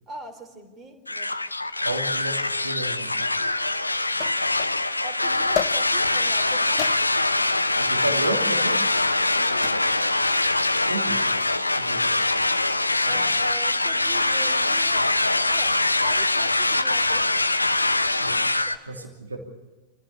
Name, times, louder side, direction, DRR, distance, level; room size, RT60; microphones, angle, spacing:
voice 1, 0.1-1.4 5.0-6.9 9.3-10.2 13.0-15.2 15.5-17.3 18.7-19.4, right 1 dB, 25° right, 7 dB, 3.8 m, -42 dB
sound 1, 1.1-18.8, left 2 dB, 85° left, 0.8 m, -23 dB
voice 2, 1.8-3.3 7.8-8.8 10.8-11.2 11.8-12.1 13.1-13.3 18.2-18.5 18.9-19.4, right 1 dB, 80° right, 4 dB, 2.8 m, -32 dB
sound 2, 3.0-3.1 4.2-4.8 5.5-6.2 6.8-7.3 8.2-8.5 9.6-10.0 11.2-11.6, left 11 dB, 35° left, 0.9 m, -32 dB
26.5 x 15.5 x 8.4 m, 1.1 s
figure-of-eight pair, 90°, 0 cm